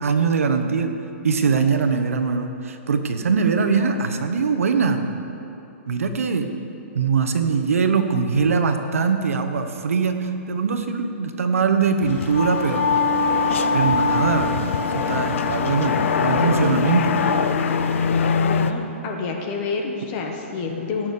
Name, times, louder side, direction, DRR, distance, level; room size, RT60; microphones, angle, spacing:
voice 1, 0.0-0.9 1.2-5.1 5.9-6.5 6.9-12.9 13.7-17.2, right 5 dB, 90° right, 6 dB, 1.1 m, -22 dB
sound 1, 12.0-18.7, left 6 dB, 65° left, 0.7 m, -24 dB
Wind instrument woodwind instrument, 12.1-17.5, left 3 dB, 55° right, 3.3 m, -25 dB
voice 2, 18.4-21.1, left 4 dB, 30° left, 2 dB, 1.3 m, -28 dB
16.5 x 6.3 x 6.7 m, 2.9 s
hypercardioid pair, 160°, 7 cm